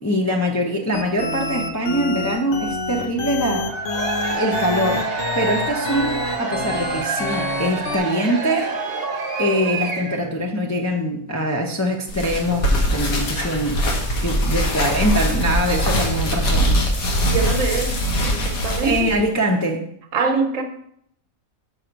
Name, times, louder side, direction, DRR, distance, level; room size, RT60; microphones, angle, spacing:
voice 1, 0.0-3.7 4.3-5.1 5.3-8.7 9.4-13.8 14.2-17.3 18.8-19.8, equal, 20° left, 0.4 m, -23 dB
sound 1, 0.9-8.0, left 2 dB, 60° left, 1.2 m, -27 dB
Cheering / Crowd, 3.6-10.3, right 4 dB, 45° right, 1.1 m, -27 dB
sound 2, 12.1-19.1, equal, 80° left, 1.6 m, -22 dB
voice 2, 17.3-19.1 20.1-20.6, right 4 dB, 65° right, 1.2 m, -24 dB
6.3 x 4.6 x 5.1 m
omnidirectional pair, 1.5 m